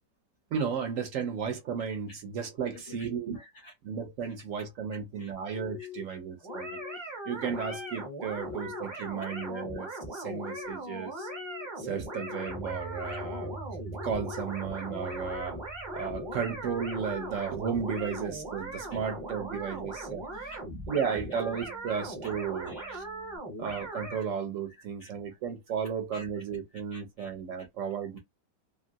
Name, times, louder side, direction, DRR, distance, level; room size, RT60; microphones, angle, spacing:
voice 1, 0.5-3.4 3.8-6.8 7.3-11.3 11.8-13.5 14.0-15.6 15.9-20.2 20.9-23.0 23.6-28.2, right 7 dB, 65° right, 0.8 m, -34 dB
voice 2, 2.6-3.1 3.3-3.7 5.2-5.3 5.8-5.9 9.0-9.1 13.1-13.2 15.4-15.5 18.0-18.1 18.9-19.0 19.3-19.4 19.7-19.8 20.2-20.6 22.2-22.3 22.7-23.0 24.7-25.4 26.1-26.4 26.7-27.3 27.6-27.7, left 1 dB, 65° left, 0.7 m, -52 dB
sound 1, 5.6-6.0 6.5-7.0 7.4-7.9 8.4-8.9 9.3-9.8 10.2-10.7 11.2-11.7 12.1-12.6 13.1-13.6 14.0-14.5 14.9-15.4 15.9-16.4 16.8-17.3 17.8-18.2, left 13 dB, 90° left, 1.3 m, -42 dB
sound 2, 6.4-24.2, right 2 dB, 20° right, 0.7 m, -40 dB
sound 3, 12.5-23.4, right 2 dB, 15° left, 0.4 m, -47 dB
2.9 x 2.6 x 2.6 m
omnidirectional pair, 1.8 m